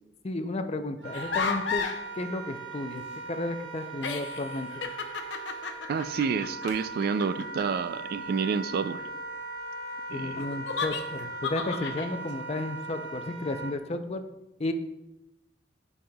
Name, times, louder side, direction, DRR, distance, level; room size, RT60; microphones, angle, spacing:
voice 1, 0.2-1.9 2.1-4.7 10.1-14.2 14.6-14.7, left 2 dB, 35° left, 8 dB, 0.5 m, -33 dB
Wind instrument woodwind instrument, 1.0-13.7, right 3 dB, 80° right, 1.2 m, -39 dB
sound 1, 1.1-2.0 3.4-3.5 3.9-7.7 10.4-12.1, left 5 dB, 75° left, 0.6 m, -34 dB
voice 2, 5.9-9.0 10.1-10.4, right 5 dB, 60° right, 13 dB, 0.3 m, -29 dB
10.5 x 5.4 x 2.3 m, 0.92 s
head